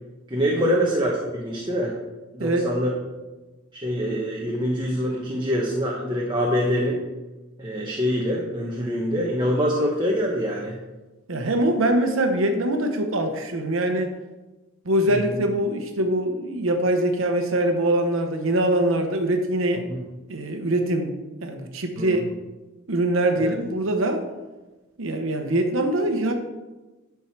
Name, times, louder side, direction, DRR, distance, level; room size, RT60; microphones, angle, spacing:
voice 1, 0.3-1.9 2.3-2.9 3.8-7.0 7.6-10.8 15.1-15.4 19.9-20.0 22.0-22.2 23.4-23.5, equal, 20° right, -2 dB, 1.0 m, -25 dB
voice 2, 11.3-14.1 14.8-19.9 20.3-21.1 21.4-22.2 22.9-24.2 25.0-26.3, right 1 dB, 75° right, 5 dB, 0.9 m, -23 dB
10.5 x 4.6 x 5.9 m, 1.1 s
head